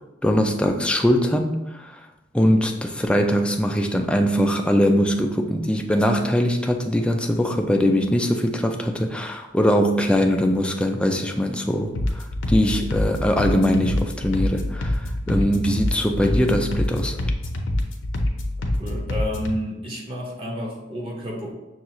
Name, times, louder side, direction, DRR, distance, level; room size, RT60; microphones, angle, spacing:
voice 1, 0.2-2.0 2.3-17.2, equal, 5° left, 3 dB, 0.3 m, -21 dB
sound 1, 11.9-19.6, left 1 dB, 70° left, 0.6 m, -25 dB
voice 2, 18.8-21.5, equal, 30° right, -2 dB, 0.7 m, -31 dB
6.2 x 2.4 x 2.9 m, 1.0 s
head